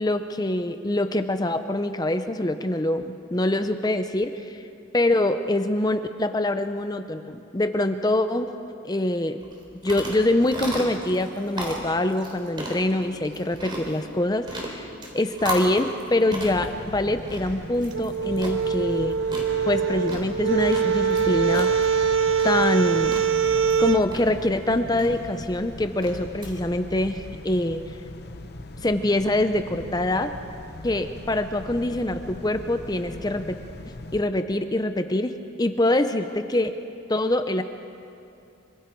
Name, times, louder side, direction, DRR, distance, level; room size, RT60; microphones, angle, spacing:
voice 1, 0.0-4.6 4.9-8.5 8.8-9.4 9.8-14.9 15.1-19.1 19.7-21.9 22.4-23.2 23.8-27.8 28.8-30.3 30.8-33.6 34.1-35.3 35.6-36.7 37.1-37.6, left 1 dB, 20° left, 9 dB, 0.6 m, -24 dB
sound 1, 9.4-26.5, right 1 dB, 25° right, 3.3 m, -37 dB
sound 2, 16.4-34.2, left 1 dB, 50° left, 1.0 m, -40 dB
sound 3, 17.9-24.0, right 6 dB, 70° right, 0.7 m, -23 dB
26.5 x 24.5 x 4.6 m, 2.6 s
head